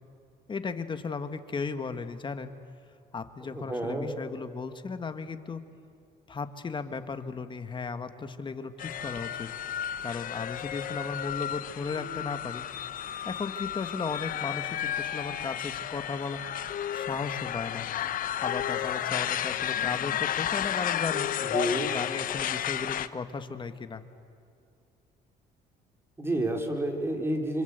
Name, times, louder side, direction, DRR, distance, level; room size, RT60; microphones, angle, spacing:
voice 1, 0.5-2.5 3.1-5.6 6.3-9.5 10.0-12.6 13.2-16.4 16.9-17.9 18.4-21.3 21.9-24.0, left 4 dB, 30° left, 9 dB, 1.7 m, -35 dB
voice 2, 3.5-4.1 21.4-21.9 26.2-27.6, right 1 dB, 15° right, 3 dB, 4.0 m, -30 dB
sound 1, 8.8-23.1, left 10 dB, 55° left, 0.9 m, -32 dB
26.5 x 26.0 x 8.2 m, 2.4 s
cardioid pair, 110°, 17 cm